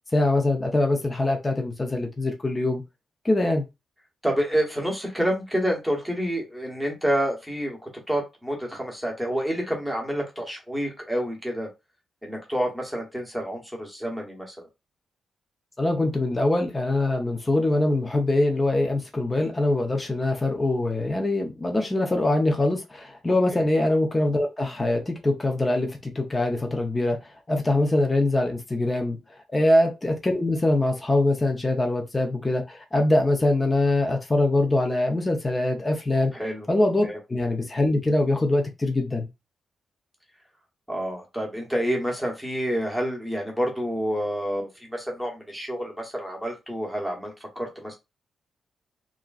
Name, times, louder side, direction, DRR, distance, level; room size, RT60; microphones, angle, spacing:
voice 1, 0.1-2.8 3.2-3.6 15.8-27.2 27.5-29.2 29.5-36.3 36.7-39.3, left 2 dB, 15° left, 0.5 m, -23 dB
voice 2, 4.2-11.7 12.2-14.7 23.3-23.7 29.6-29.7 36.3-36.7 37.0-37.2 40.9-48.0, equal, ahead, 0.9 m, -28 dB
2.9 x 2.5 x 2.3 m
wide cardioid pair, 145°, 0 cm